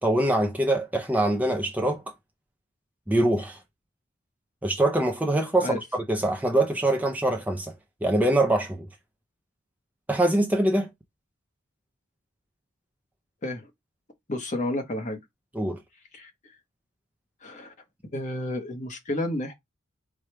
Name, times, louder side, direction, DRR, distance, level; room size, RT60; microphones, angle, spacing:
voice 1, 0.0-2.0 3.1-3.6 4.6-5.8 6.1-7.7 8.0-8.9 10.1-10.9 15.5-15.8, right 1 dB, 5° right, 0.5 m, -23 dB
voice 2, 14.3-15.2 16.1-16.3 17.4-17.7 18.1-19.5, left 1 dB, 35° left, 0.9 m, -31 dB
4.8 x 2.4 x 4.4 m
head